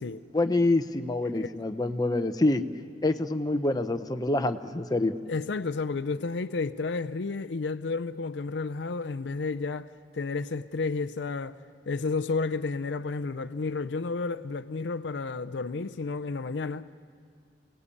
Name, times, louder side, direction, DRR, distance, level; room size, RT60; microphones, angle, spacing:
voice 1, 0.3-2.6 3.0-5.1, left 2 dB, 20° left, 0.8 m, -26 dB
voice 2, 5.3-11.6 11.9-16.9, left 4 dB, 65° left, 0.5 m, -31 dB
28.0 x 18.5 x 8.5 m
head